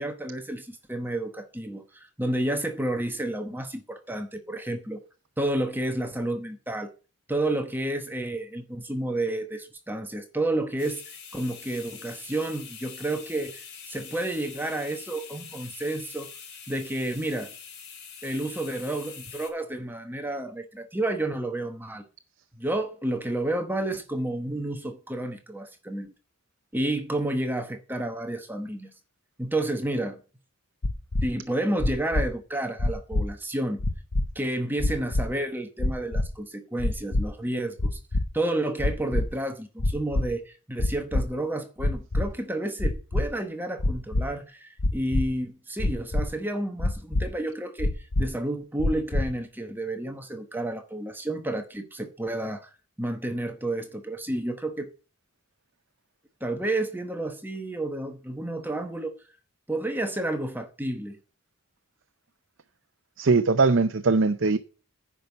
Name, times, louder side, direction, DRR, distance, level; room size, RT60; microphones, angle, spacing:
voice 1, 0.0-5.0 5.4-6.9 7.3-16.3 16.7-17.5 18.2-22.0 22.5-26.1 26.7-28.9 29.4-30.2 31.2-33.9 34.3-38.0 38.3-54.9 56.4-59.2 59.7-61.2, right 1 dB, 10° right, 0.9 m, -30 dB
sound 1, 10.8-19.5, left 6 dB, 85° left, 3.8 m, -44 dB
sound 2, 30.8-31.2 31.8-32.2 32.8-33.2 33.8-34.3 34.8-35.2 35.8-36.3 36.8-37.2 37.8-38.2 38.8-39.2 39.8-40.3 40.8-41.2 41.8-42.2 42.8-43.2 43.8-44.2 44.8-45.2 45.8-46.2 46.8-47.2 47.8-48.2 48.8-49.2, left 2 dB, 65° left, 0.8 m, -24 dB
voice 2, 63.2-64.6, right 4 dB, 55° right, 0.6 m, -21 dB
10.0 x 5.4 x 8.0 m
head